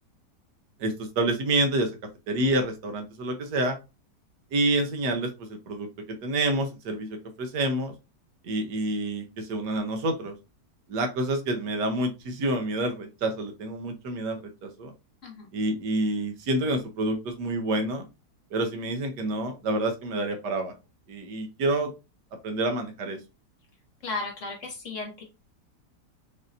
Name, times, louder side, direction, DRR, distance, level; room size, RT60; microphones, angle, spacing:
voice 1, 0.8-1.9 2.3-3.8 4.5-7.9 8.4-10.3 10.9-14.9 15.5-18.0 18.5-20.7 21.1-21.9 22.4-23.2, right 2 dB, 70° right, 4 dB, 1.5 m, -28 dB
voice 2, 24.0-25.2, left 3 dB, 50° left, 1 dB, 1.4 m, -35 dB
5.3 x 2.8 x 2.6 m, 0.27 s
omnidirectional pair, 1.9 m